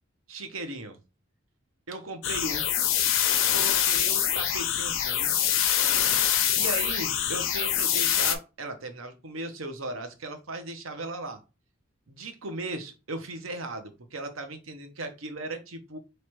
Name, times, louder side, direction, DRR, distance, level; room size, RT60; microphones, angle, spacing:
voice 1, 0.3-1.0 1.9-2.6 3.5-5.3 6.6-11.4 12.1-16.0, right 2 dB, 85° right, 7 dB, 0.9 m, -37 dB
sound 1, 2.2-8.3, left 10 dB, 80° left, 0.7 m, -25 dB
3.1 x 3.1 x 4.6 m, 0.29 s
head